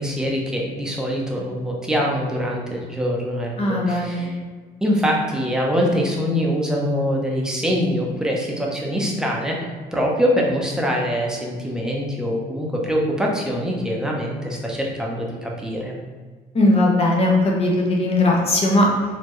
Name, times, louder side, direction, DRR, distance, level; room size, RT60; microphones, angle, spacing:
voice 1, 0.0-4.4 4.8-16.0, equal, 5° right, -2 dB, 0.8 m, -24 dB
voice 2, 3.6-4.3 16.5-17.7 18.0-18.9, left 2 dB, 35° left, -1 dB, 1.0 m, -18 dB
4.2 x 2.8 x 3.2 m, 1.5 s
cardioid pair, 110°, 17 cm